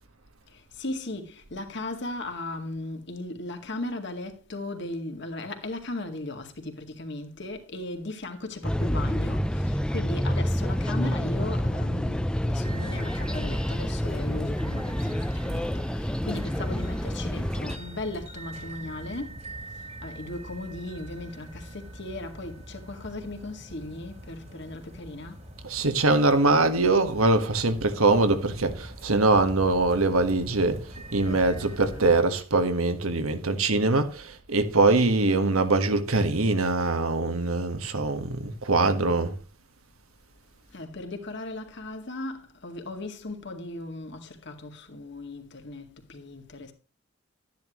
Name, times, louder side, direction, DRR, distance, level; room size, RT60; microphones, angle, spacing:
voice 1, 0.5-19.4 19.7-25.4 31.2-32.2 40.7-46.7, left 2 dB, 55° left, 2.1 m, -37 dB
sound 1, 8.6-17.8, equal, 5° left, 0.5 m, -28 dB
sound 2, 12.6-32.2, right 1 dB, 30° right, 1.9 m, -43 dB
voice 2, 25.6-39.3, right 2 dB, 85° right, 1.5 m, -23 dB
12.5 x 10.5 x 3.1 m
head